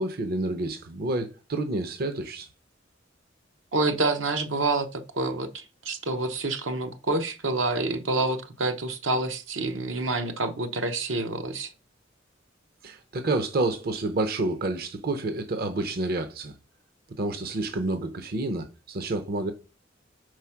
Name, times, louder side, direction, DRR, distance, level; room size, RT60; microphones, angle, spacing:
voice 1, 0.0-2.5 12.8-16.5 17.2-19.5, right 2 dB, 55° right, 0.7 m, -29 dB
voice 2, 3.7-11.7, right 2 dB, 80° right, 0.8 m, -28 dB
4.8 x 4.3 x 5.8 m
head